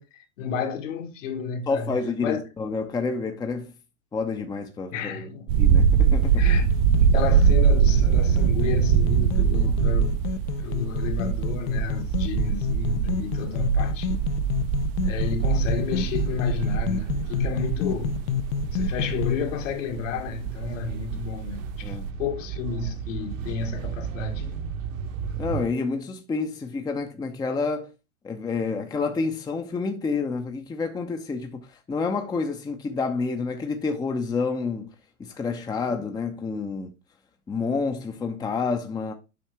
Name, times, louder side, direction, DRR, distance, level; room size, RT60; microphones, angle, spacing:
voice 1, 0.0-1.9 2.2-2.4 4.9-5.5 6.4-6.8 7.1-10.2 10.6-14.2 15.0-18.1 18.7-24.5, left 5 dB, 60° left, 1.8 m, -32 dB
voice 2, 1.7-3.7 4.1-5.3 5.6-6.5 21.8-22.1 25.4-27.9 28.2-34.9 35.2-36.9 37.5-39.1, left 4 dB, 10° left, 0.7 m, -29 dB
sound 1, 5.5-21.2 21.6-22.1, right 7 dB, 40° right, 0.6 m, -23 dB
sound 2, 6.2-19.3, left 8 dB, 45° left, 0.7 m, -30 dB
sound 3, 15.4-25.7, right 7 dB, 60° right, 1.3 m, -36 dB
7.8 x 5.4 x 3.4 m
hypercardioid pair, 110°, 44 cm